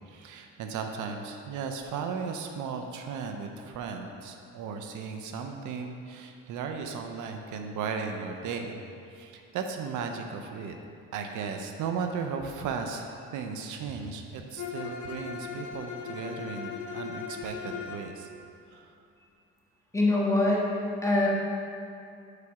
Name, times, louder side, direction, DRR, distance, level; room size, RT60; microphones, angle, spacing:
voice 1, 0.1-8.8 9.1-10.8 11.1-18.3 18.7-18.9, right 5 dB, 80° right, 4 dB, 0.6 m, -36 dB
Bowed string instrument, 14.6-18.1, left 6 dB, 70° left, 0.8 m, -38 dB
voice 2, 19.9-20.7 21.0-21.3, left 2 dB, 10° left, -5 dB, 1.5 m, -23 dB
5.0 x 4.6 x 5.7 m, 2.5 s
cardioid pair, 90°, 30 cm